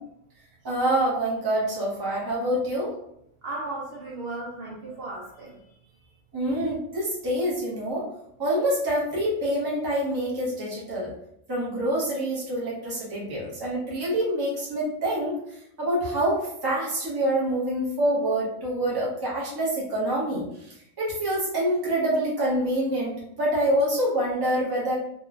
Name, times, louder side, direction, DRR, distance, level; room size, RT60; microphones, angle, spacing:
voice 1, 0.6-2.9 6.3-8.0 8.4-11.1 11.5-15.3 15.8-20.4 21.0-23.1 23.4-24.9, right 1 dB, 20° right, -6 dB, 0.7 m, -26 dB
voice 2, 3.4-5.6, right 2 dB, 60° right, -5 dB, 0.7 m, -35 dB
3.0 x 2.3 x 2.4 m, 0.75 s
omnidirectional pair, 1.4 m